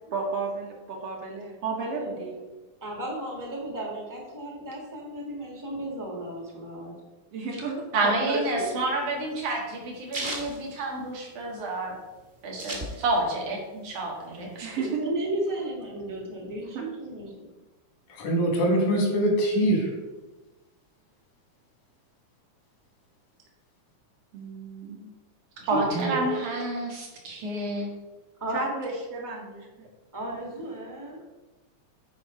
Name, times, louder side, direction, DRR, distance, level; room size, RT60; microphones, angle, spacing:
voice 1, 0.1-2.4 7.3-8.7 12.7-12.8 13.7-13.8 14.6-15.2 16.7-16.9 24.3-25.1 28.5-29.7, right 3 dB, 60° right, 0 dB, 2.1 m, -33 dB
voice 2, 1.9-2.2 2.8-6.9 15.0-17.5 25.6-26.5 28.4-28.6 30.1-31.2, right 1 dB, 10° right, -1 dB, 0.8 m, -34 dB
voice 3, 7.9-11.9 12.4-13.6 13.8-14.7 25.7-27.9, right 2 dB, 90° right, -1 dB, 3.2 m, -29 dB
sound 1, 8.4-11.5 11.9-12.0 12.1-13.4 13.8-14.9, right 2 dB, 30° right, 1.1 m, -36 dB
voice 4, 18.1-19.9 25.9-26.1, right 1 dB, 85° left, 0 dB, 3.3 m, -23 dB
9.2 x 4.6 x 5.0 m, 1.1 s
omnidirectional pair, 3.4 m